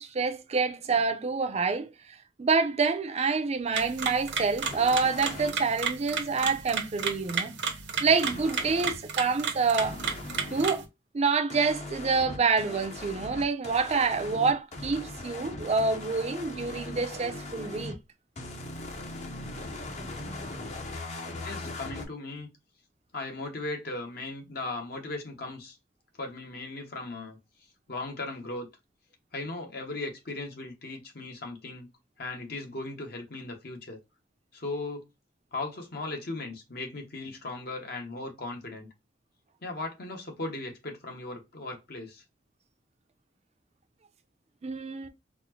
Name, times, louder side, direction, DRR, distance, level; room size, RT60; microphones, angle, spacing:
voice 1, 0.0-1.9 2.4-7.5 8.0-10.0 10.5-10.9 11.1-18.0 44.6-45.1, right 4 dB, 35° right, 0.5 m, -27 dB
sound 1, 3.7-10.8, right 6 dB, 70° right, 0.8 m, -33 dB
sound 2, 4.6-5.5 8.1-9.0 9.8-10.7 11.5-18.0 18.4-22.1, left 2 dB, 40° left, 0.7 m, -39 dB
voice 2, 21.4-22.5 23.1-25.8 26.2-27.4 27.9-28.7 29.3-31.9 32.2-34.0 34.5-35.1 35.5-38.9 39.6-42.2, left 2 dB, 60° left, 1.0 m, -37 dB
4.1 x 2.1 x 2.8 m
head